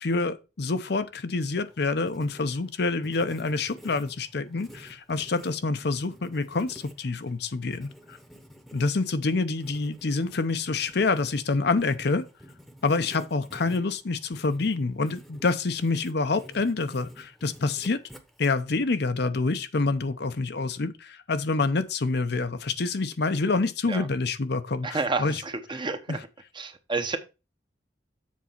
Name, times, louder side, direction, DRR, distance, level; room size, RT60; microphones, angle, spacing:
voice 1, 0.0-8.2 8.7-12.3 12.8-18.0 18.4-25.4 26.1-26.2, left 3 dB, 65° left, 0.7 m, -27 dB
Writing, 1.7-18.8, equal, ahead, 1.0 m, -50 dB
voice 2, 24.8-26.2 26.5-27.2, right 3 dB, 25° right, 0.9 m, -30 dB
7.4 x 4.1 x 5.7 m
head